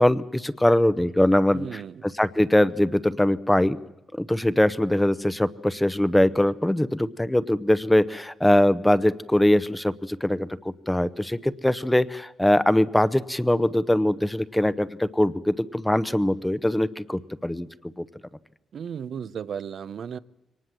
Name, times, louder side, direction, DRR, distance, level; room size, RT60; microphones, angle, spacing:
voice 1, 0.0-3.8 4.1-17.7 18.0-18.1, left 1 dB, 5° left, 14 dB, 0.7 m, -22 dB
voice 2, 1.5-2.1 18.7-20.2, right 7 dB, 60° right, 16 dB, 0.7 m, -35 dB
23.0 x 19.0 x 7.6 m, 0.94 s
cardioid pair, 100°, 0 cm